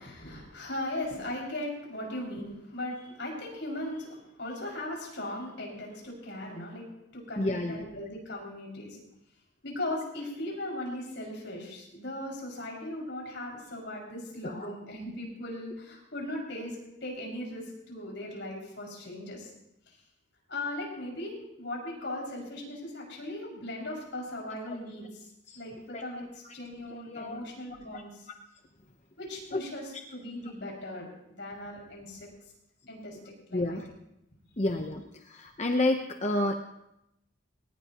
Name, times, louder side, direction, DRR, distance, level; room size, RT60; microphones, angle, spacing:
voice 1, 0.0-6.8 7.1-9.0 9.6-16.8 17.0-19.5 20.5-25.2 25.5-26.2 26.5-28.1 29.2-31.1 31.4-32.3 32.9-33.2 33.5-33.8, left 1 dB, 60° left, -2 dB, 6.2 m, -38 dB
voice 2, 7.4-7.9 14.4-14.7 25.5-25.6 25.9-26.0 27.1-27.4 27.9-28.0 29.5-29.6 33.5-33.9 34.6-35.0 35.3-36.5, left 2 dB, 35° left, 4 dB, 0.9 m, -29 dB
21.0 x 19.0 x 3.0 m, 0.84 s
head